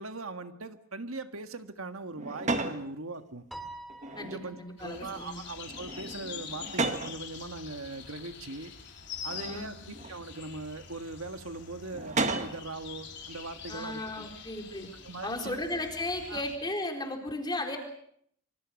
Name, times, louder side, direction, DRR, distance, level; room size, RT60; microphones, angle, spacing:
voice 1, 0.0-3.5 4.2-8.7 9.2-14.3 15.0-15.6 16.3-16.4, right 3 dB, 85° right, 8 dB, 1.7 m, -40 dB
sound 1, 2.1-2.8 3.9-4.6 5.0-5.3 5.7-7.2 8.0-8.1 9.3-10.2 11.9-12.6, right 3 dB, 35° right, 1.7 m, -34 dB
Piano, 3.5-5.0, right 2 dB, ahead, 2.5 m, -45 dB
voice 2, 4.2-5.4 9.3-9.7 13.7-14.9 15.2-17.8, left 2 dB, 20° left, 4 dB, 4.2 m, -35 dB
sound 2, 4.8-16.6, left 6 dB, 55° left, 4.1 m, -45 dB
26.5 x 25.5 x 6.4 m, 0.68 s
head